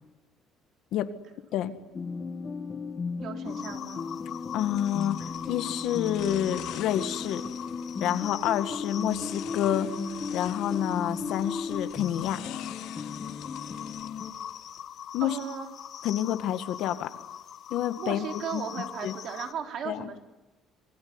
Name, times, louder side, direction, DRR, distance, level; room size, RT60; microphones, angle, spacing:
sound 1, 1.9-14.3, left 4 dB, 20° left, 1.6 m, -36 dB
voice 1, 3.2-4.1 15.2-15.7 18.0-20.2, right 7 dB, 45° right, 5 dB, 3.7 m, -36 dB
sound 2, 3.4-19.5, left 9 dB, 40° left, 1.5 m, -42 dB
voice 2, 4.5-7.4 8.0-9.9 10.3-12.4 15.1-15.4 16.0-17.1 17.7-18.2 18.5-18.6 19.0-19.1 19.9-20.1, left 11 dB, 60° left, 10 dB, 1.9 m, -28 dB
sound 3, 4.8-14.8, left 13 dB, 80° left, 2.7 m, -48 dB
27.5 x 22.0 x 9.8 m, 1.1 s
cardioid pair, 160°, 0 cm